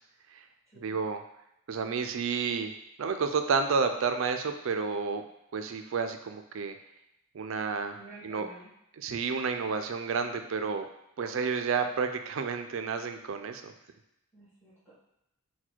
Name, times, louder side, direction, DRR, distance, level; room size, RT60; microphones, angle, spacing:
voice 1, 0.8-1.2 1.7-2.7 3.0-5.2 5.5-6.7 7.3-8.0 8.2-8.5 9.0-10.8 11.2-13.7, right 5 dB, 65° right, 7 dB, 0.4 m, -30 dB
voice 2, 7.9-8.7 14.3-14.9, right 1 dB, 10° left, -14 dB, 1.5 m, -50 dB
4.1 x 2.2 x 4.4 m, 0.82 s
head